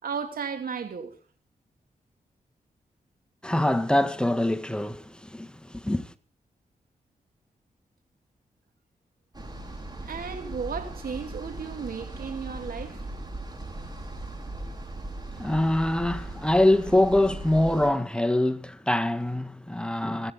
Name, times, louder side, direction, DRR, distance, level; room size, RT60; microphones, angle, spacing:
voice 1, 0.0-1.1 10.0-13.0, right 6 dB, 75° right, 3.2 m, -34 dB
voice 2, 3.4-6.1 15.3-20.3, left 1 dB, 5° left, 1.6 m, -24 dB
sound 1, 9.3-17.9, right 2 dB, 25° right, 5.1 m, -38 dB
27.0 x 9.7 x 4.1 m
cardioid pair, 50°, 15 cm